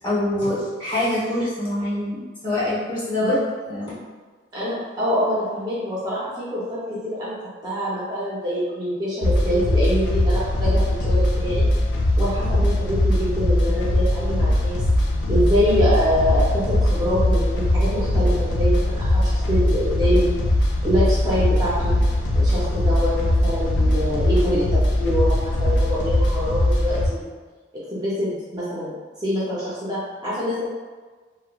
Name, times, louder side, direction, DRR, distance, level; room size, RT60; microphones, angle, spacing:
voice 1, 0.0-3.4 3.7-4.0, left 1 dB, 25° left, -10 dB, 0.9 m, -25 dB
voice 2, 4.5-6.8 7.0-7.3 7.6-11.7 12.2-14.8 15.3-20.3 20.8-22.0 22.4-27.2 27.9-30.7, equal, 20° right, -8 dB, 0.5 m, -25 dB
sound 1, 9.2-27.1, left 1 dB, 65° left, 0.4 m, -20 dB
2.9 x 2.1 x 2.3 m, 1.4 s
head